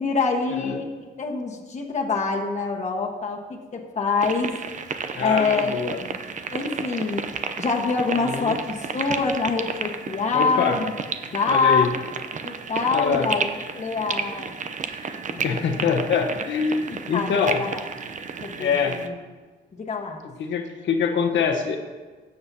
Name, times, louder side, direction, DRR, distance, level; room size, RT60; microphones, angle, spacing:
voice 1, 0.0-4.5 5.2-5.7 6.0-6.2 6.5-7.3 7.6-10.8 11.3-11.9 12.4-13.4 13.7-14.5 15.3-15.9 16.8-17.8 18.4-19.2 19.8-20.2, left 4 dB, 35° left, 0 dB, 1.4 m, -25 dB
sound 1, 4.2-19.1, right 5 dB, 40° right, 0.7 m, -32 dB
voice 2, 5.2-6.0 8.1-8.5 10.3-10.8 11.5-11.9 12.9-13.3 15.4-17.6 18.6-19.0 20.4-21.8, left 6 dB, 70° left, 4 dB, 1.3 m, -24 dB
15.0 x 7.7 x 2.9 m, 1.4 s
cardioid pair, 90°, 20 cm